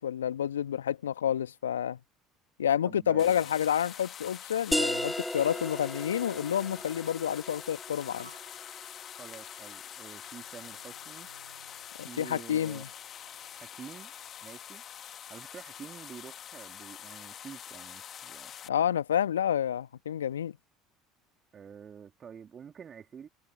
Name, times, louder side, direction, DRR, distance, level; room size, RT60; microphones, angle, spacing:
voice 1, 0.0-2.0 2.6-8.3 12.0-12.9 18.7-20.6, left 9 dB, 80° left, 1.4 m, -29 dB
voice 2, 2.8-3.5 9.2-11.3 12.1-12.8 13.6-14.1 14.4-14.8 15.3-18.5 21.5-23.3, right 7 dB, 35° right, 2.9 m, -48 dB
sound 1, 3.2-18.7, left 9 dB, 40° left, 1.9 m, -45 dB
sound 2, 4.7-10.1, left 1 dB, 5° left, 0.6 m, -36 dB
sound 3, 7.6-7.7 8.2-9.5 10.1-12.4 12.9-14.7, right 4 dB, 90° right, 7.4 m, -60 dB
figure-of-eight pair, 65°, 0 cm